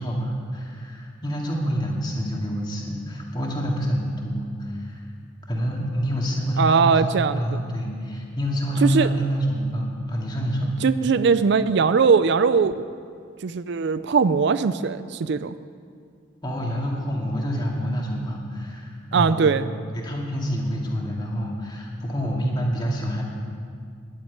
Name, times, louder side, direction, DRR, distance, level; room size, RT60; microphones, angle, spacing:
voice 1, 0.0-5.0 5.5-10.7 16.4-19.6 19.9-23.2, equal, 25° left, -2 dB, 2.3 m, -27 dB
voice 2, 6.6-7.6 8.8-9.1 10.8-12.8 13.4-15.5 19.1-19.7, right 5 dB, 60° right, 13 dB, 0.4 m, -20 dB
11.0 x 8.9 x 9.4 m, 2.2 s
head